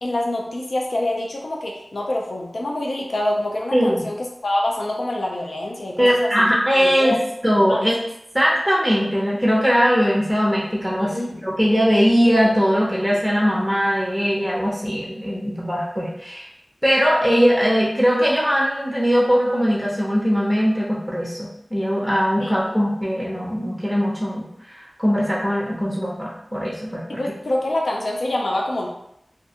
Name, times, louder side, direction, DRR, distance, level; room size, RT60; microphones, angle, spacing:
voice 1, 0.0-6.5 6.7-7.2 7.5-7.9 11.0-11.4 22.4-22.8 27.1-28.9, left 1 dB, 90° left, -1 dB, 0.4 m, -26 dB
voice 2, 3.7-4.1 6.0-8.0 8.3-16.5 16.8-27.2, equal, ahead, -5 dB, 0.6 m, -20 dB
2.5 x 2.2 x 2.7 m, 0.76 s
wide cardioid pair, 55°, 0 cm